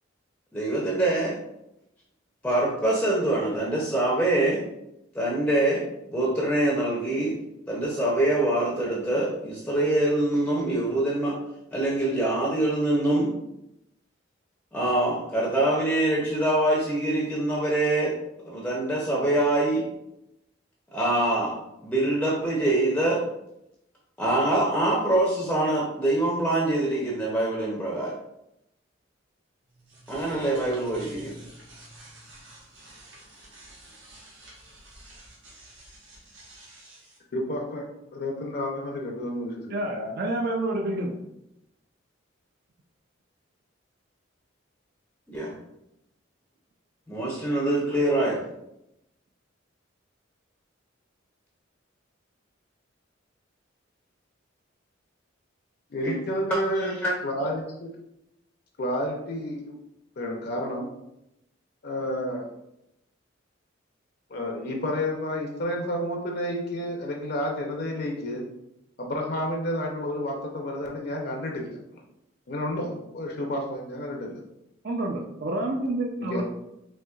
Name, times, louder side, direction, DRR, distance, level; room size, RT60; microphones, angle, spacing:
voice 1, 0.5-1.4 2.4-4.6 5.1-7.4 7.7-11.4 11.7-13.3 14.7-18.1 18.5-19.9 20.9-23.2 24.2-28.1 30.1-31.3 45.3-45.6 47.1-48.4 56.0-56.1 56.7-57.1, right 1 dB, 5° left, -4 dB, 0.5 m, -24 dB
sound 1, 29.6-37.2, right 1 dB, 75° right, 1.1 m, -49 dB
voice 2, 37.3-37.8 38.1-39.8 55.9-56.9 57.2-57.9 58.8-59.7 60.2-60.9 61.8-62.5 64.3-68.4 69.0-71.8 72.5-74.4 76.2-76.4, left 1 dB, 55° left, 1 dB, 0.5 m, -30 dB
voice 3, 39.7-41.2 74.8-76.4, right 1 dB, 50° right, 0 dB, 0.4 m, -28 dB
4.3 x 2.7 x 2.3 m, 0.84 s
head